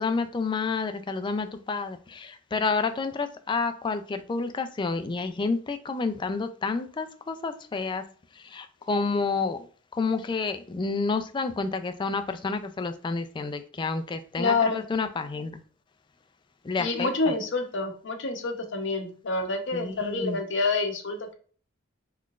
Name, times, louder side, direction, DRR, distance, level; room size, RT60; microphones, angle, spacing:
voice 1, 0.0-8.0 8.4-9.7 9.9-15.6 16.6-17.1 19.7-20.4, left 4 dB, 25° left, 8 dB, 0.3 m, -29 dB
voice 2, 14.4-14.8 16.8-21.3, left 3 dB, 65° left, 4 dB, 0.7 m, -27 dB
4.0 x 3.2 x 2.4 m, 0.43 s
head